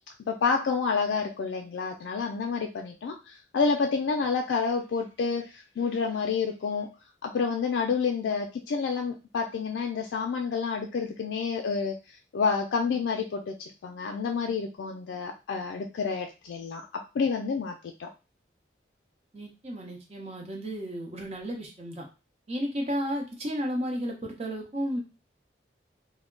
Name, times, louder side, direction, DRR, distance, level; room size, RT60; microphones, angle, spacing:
voice 1, 0.3-6.9 7.2-18.1, left 5 dB, 90° left, 2 dB, 0.3 m, -29 dB
voice 2, 19.3-22.0 22.5-25.0, equal, 35° right, 1 dB, 0.7 m, -33 dB
2.2 x 2.1 x 3.6 m, 0.30 s
head